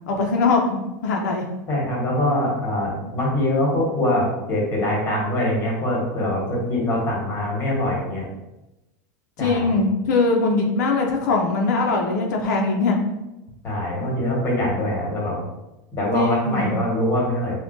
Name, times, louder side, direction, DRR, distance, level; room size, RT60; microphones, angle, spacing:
voice 1, 0.1-0.6 1.0-1.5 9.4-13.0 16.1-16.8, left 3 dB, 90° left, 1 dB, 0.4 m, -21 dB
voice 2, 1.7-8.3 9.4-9.8 13.6-15.4 15.9-17.6, left 1 dB, 25° left, -3 dB, 1.0 m, -23 dB
3.6 x 2.1 x 2.5 m, 0.96 s
supercardioid pair, 150°, 9 cm